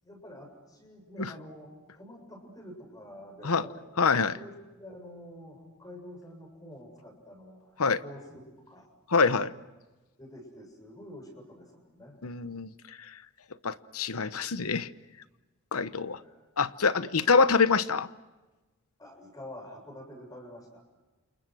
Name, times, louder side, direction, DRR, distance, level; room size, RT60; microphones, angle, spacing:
voice 1, 0.0-3.9 4.4-8.4 8.7-8.9 10.2-12.2 15.9-16.4 19.0-20.8, left 1 dB, 15° left, 7.1 m, -47 dB
voice 2, 4.0-4.4 7.8-8.0 9.1-9.5 12.2-12.7 13.6-14.9 15.7-16.2 16.6-18.1, left 4 dB, 75° left, 1.0 m, -25 dB
30.0 x 28.0 x 6.3 m
head